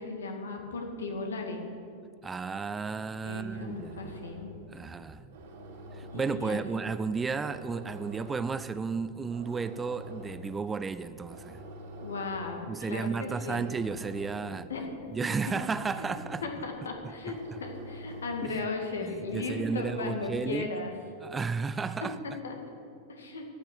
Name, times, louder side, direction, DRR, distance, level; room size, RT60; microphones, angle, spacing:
voice 1, 0.0-1.6 3.2-4.5 6.1-6.6 12.0-13.6 14.5-14.9 16.0-16.1 16.4-20.9 22.0-22.5 23.1-23.4, left 3 dB, 70° left, 2.0 m, -36 dB
voice 2, 2.2-4.1 4.7-5.4 5.9-11.6 12.7-14.7 15.1-16.4 17.0-17.6 18.4-18.7 19.0-20.7 21.2-22.2, right 5 dB, 15° right, 0.4 m, -33 dB
sound 1, 3.2-20.6, equal, 60° right, 2.9 m, -47 dB
15.0 x 6.5 x 9.5 m
figure-of-eight pair, 90°, 0 cm